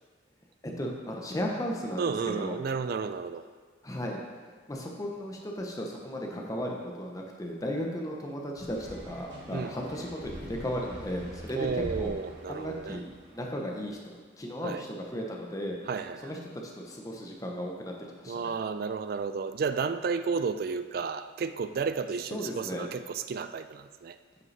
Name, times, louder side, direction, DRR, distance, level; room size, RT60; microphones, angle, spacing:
voice 1, 0.6-2.6 3.8-12.1 12.5-15.8 16.2-18.5 22.3-22.9, equal, 20° left, 0 dB, 0.7 m, -35 dB
voice 2, 2.0-3.5 9.5-9.7 11.6-13.0 14.6-14.8 15.9-16.3 18.3-24.2, right 5 dB, 50° right, 11 dB, 0.3 m, -32 dB
sound 1, 8.6-13.4, right 1 dB, 75° right, 1.5 m, -44 dB
9.5 x 5.2 x 3.3 m, 1.5 s
head